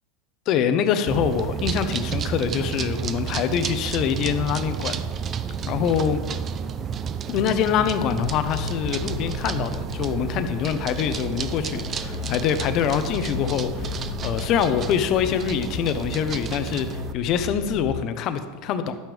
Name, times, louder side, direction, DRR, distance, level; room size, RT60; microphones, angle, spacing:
voice 1, 0.5-5.0 5.7-6.2 7.3-19.0, left 8 dB, 50° left, 9 dB, 0.9 m, -25 dB
sound 1, 1.1-17.1, right 7 dB, 35° right, 0.6 m, -31 dB
sound 2, 8.2-18.0, left 9 dB, 75° left, 0.4 m, -35 dB
11.5 x 9.4 x 3.5 m, 1.4 s
hypercardioid pair, 100°, 0 cm